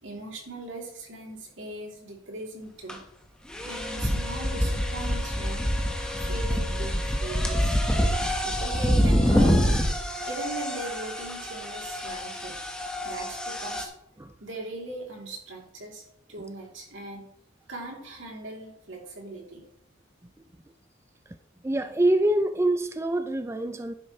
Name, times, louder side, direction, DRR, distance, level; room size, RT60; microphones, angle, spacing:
voice 1, 0.0-3.0 3.6-5.7 6.2-7.8 8.4-9.7 10.2-12.6 13.0-13.9 14.4-16.0 16.3-17.3 17.7-19.6, right 2 dB, 75° right, -1 dB, 3.1 m, -39 dB
sound 1, 2.9-3.0 3.5-13.8, equal, 5° left, 1.3 m, -26 dB
voice 2, 21.6-23.9, right 1 dB, 15° right, 8 dB, 0.4 m, -25 dB
11.0 x 10.0 x 3.2 m, 0.73 s
head